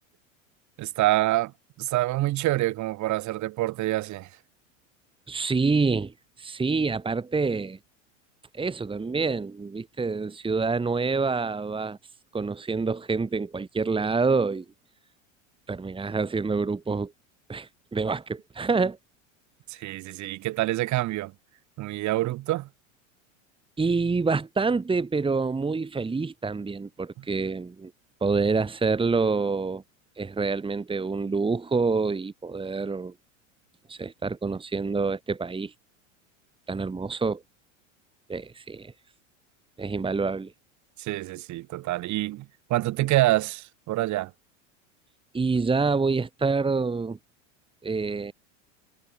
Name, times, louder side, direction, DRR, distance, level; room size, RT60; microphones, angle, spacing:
voice 1, 0.8-1.5 1.8-4.3 19.7-21.3 21.8-22.7 41.0-44.3, right 17 dB, 45° right, 5.0 m, -26 dB
voice 2, 5.3-7.8 8.5-12.0 12.3-14.6 15.7-17.1 17.5-19.0 23.8-27.9 28.2-29.8 30.2-33.1 33.9-35.7 36.7-37.4 38.3-38.9 39.8-40.5 45.3-47.2 47.8-48.3, right 4 dB, 15° right, 2.8 m, -27 dB
hypercardioid pair, 105°, 39 cm